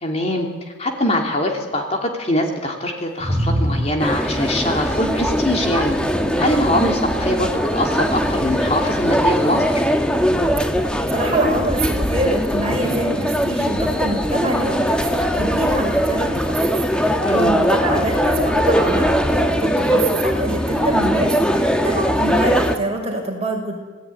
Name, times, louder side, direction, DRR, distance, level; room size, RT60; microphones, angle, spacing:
voice 1, 0.0-0.5 0.8-6.0 6.4-9.8 17.2-17.5, left 1 dB, 30° left, 2 dB, 3.0 m, -22 dB
sound 1, 3.2-5.1 7.9-9.9, equal, 10° right, 5.3 m, -27 dB
sound 2, 4.0-22.8, equal, 5° left, 1.7 m, -20 dB
voice 2, 10.8-16.6 17.0-23.8, right 1 dB, 30° right, 1 dB, 5.9 m, -25 dB
27.5 x 19.0 x 9.8 m, 1.3 s
head